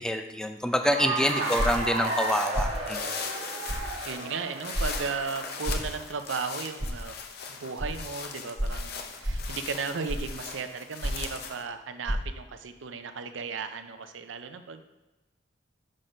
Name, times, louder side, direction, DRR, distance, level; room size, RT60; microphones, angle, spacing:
voice 1, 0.0-3.0, equal, 5° left, 7 dB, 0.4 m, -27 dB
Cheering / Applause, 0.7-5.9, right 2 dB, 65° right, 1.4 m, -33 dB
sound 1, 1.3-11.6, left 6 dB, 55° left, 0.7 m, -40 dB
voice 2, 1.4-1.7 4.0-7.2 7.5-14.8, right 5 dB, 85° right, 9 dB, 0.6 m, -35 dB
sound 2, 1.6-1.9 2.5-2.8 3.7-3.9 4.7-4.9 5.6-5.9 6.8-6.9 7.8-7.9 8.6-8.8 9.2-9.5 10.1-10.4 11.0-11.3 12.0-12.2, equal, 20° right, 0.8 m, -29 dB
6.2 x 4.3 x 5.1 m, 1.1 s
head